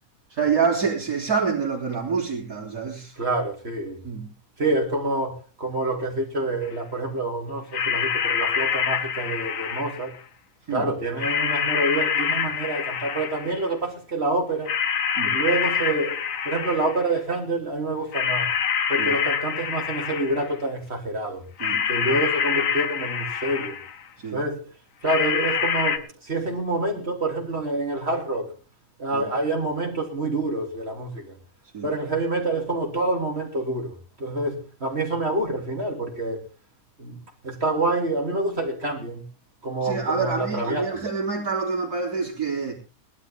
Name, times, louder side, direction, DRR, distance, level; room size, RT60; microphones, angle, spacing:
voice 1, 0.4-3.1 4.0-4.3 10.7-10.9 15.2-15.4 19.0-19.1 21.6-21.8 24.2-24.4 29.1-29.2 31.7-31.9 39.8-42.7, right 5 dB, 60° right, 3.7 m, -26 dB
voice 2, 3.2-4.0 4.6-10.1 10.7-14.7 15.2-16.2 16.4-18.5 18.9-21.4 21.9-23.8 24.3-24.7 25.0-28.5 29.0-31.4 31.8-36.4 37.0-37.2 37.4-39.2 39.6-41.0, right 2 dB, 35° right, 3.5 m, -27 dB
sound 1, 6.7-6.8 7.7-10.2 11.2-13.6 14.7-17.1 18.1-20.6 21.6-24.0 25.1-26.0, left 7 dB, 55° left, 1.3 m, -26 dB
20.0 x 12.5 x 3.6 m
omnidirectional pair, 1.8 m